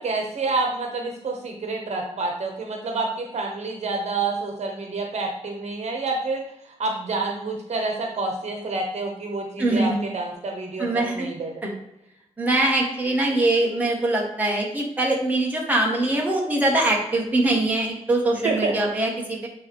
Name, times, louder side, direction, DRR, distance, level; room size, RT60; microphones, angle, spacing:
voice 1, 0.0-11.6 18.4-18.7, right 3 dB, 65° right, 1 dB, 1.1 m, -28 dB
voice 2, 9.6-10.0 10.8-11.3 11.6-11.7 12.4-19.5, right 2 dB, 15° right, -2 dB, 1.5 m, -22 dB
9.0 x 3.2 x 3.5 m, 0.83 s
wide cardioid pair, 125°, 12 cm